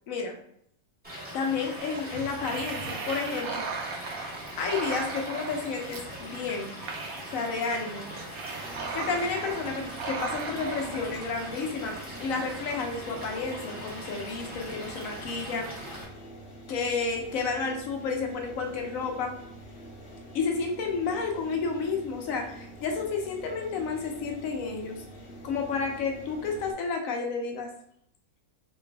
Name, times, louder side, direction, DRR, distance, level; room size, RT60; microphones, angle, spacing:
voice 1, 0.1-0.4 1.3-3.7 4.2-6.7 7.3-8.1 8.9-16.0 16.7-19.3 20.3-25.0 25.4-27.7, left 4 dB, 70° left, 3 dB, 1.0 m, -31 dB
Stream / Liquid, 1.0-16.0, equal, 5° right, 1.1 m, -41 dB
sound 1, 1.8-12.1, right 4 dB, 85° right, 1.1 m, -37 dB
sound 2, 8.5-26.7, right 1 dB, 50° left, 0.9 m, -46 dB
3.1 x 2.6 x 3.3 m, 0.69 s
omnidirectional pair, 1.5 m